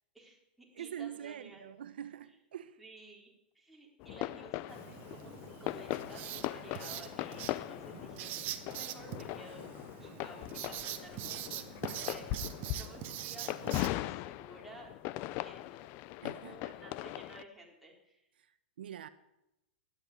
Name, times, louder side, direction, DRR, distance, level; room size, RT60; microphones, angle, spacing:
voice 1, 0.1-1.6 2.8-5.4 5.6-9.7 10.0-14.9 15.4-16.0 16.3-18.3, right 2 dB, ahead, 3.9 m, -54 dB
voice 2, 0.7-2.8 16.2-16.7 18.4-19.1, right 9 dB, 80° right, 0.9 m, -45 dB
sound 1, 4.0-17.4, left 15 dB, 40° left, 0.6 m, -40 dB
Writing, 4.7-13.9, right 13 dB, 40° right, 1.2 m, -44 dB
12.5 x 10.0 x 8.6 m
hypercardioid pair, 135°, 5 cm